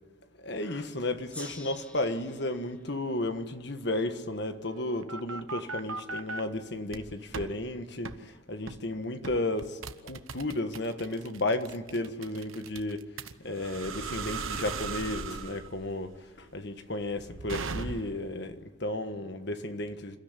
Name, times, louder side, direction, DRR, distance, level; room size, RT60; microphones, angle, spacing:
voice 1, 0.4-13.0 13.4-20.2, left 1 dB, 55° left, 1.5 m, -33 dB
Gong, 1.3-4.4, left 1 dB, 5° left, 2.2 m, -50 dB
sound 1, 4.6-6.4 6.9-7.5 8.0-8.2 8.7-8.9 9.2-18.3, right 4 dB, 85° right, 1.1 m, -38 dB
28.0 x 13.0 x 9.7 m
head